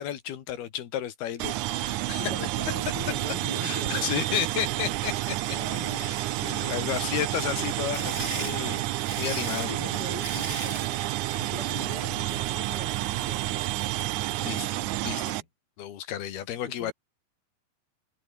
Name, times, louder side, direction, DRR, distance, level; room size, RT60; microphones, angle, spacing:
voice 1, 0.0-2.2 3.6-5.6 6.0-6.2 6.4-8.8 9.2-9.9 14.4-14.7 15.0-15.2 15.8-16.9, left 10 dB, 80° left, 3.9 m, -32 dB
sound 1, 1.4-15.4, right 16 dB, 85° right, 1.7 m, -30 dB
voice 2, 2.2-4.2 5.6-6.1 6.9-7.2 7.8-8.5 9.6-11.1 11.4-14.7 15.0-15.4 16.7-16.9, left 3 dB, 25° left, 3.8 m, -42 dB
sound 2, 7.6-10.9, right 2 dB, 15° right, 5.8 m, -37 dB
omnidirectional pair, 4.5 m